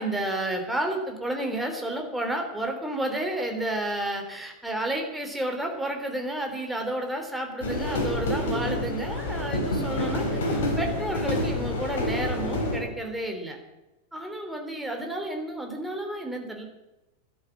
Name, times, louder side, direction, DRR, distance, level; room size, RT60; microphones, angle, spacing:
voice 1, 0.0-13.6 14.1-16.6, right 1 dB, 5° right, 2 dB, 3.4 m, -31 dB
sound 1, 7.6-12.8, left 1 dB, 60° left, 4.2 m, -28 dB
13.5 x 12.0 x 7.4 m, 1.0 s
figure-of-eight pair, 90°, 0 cm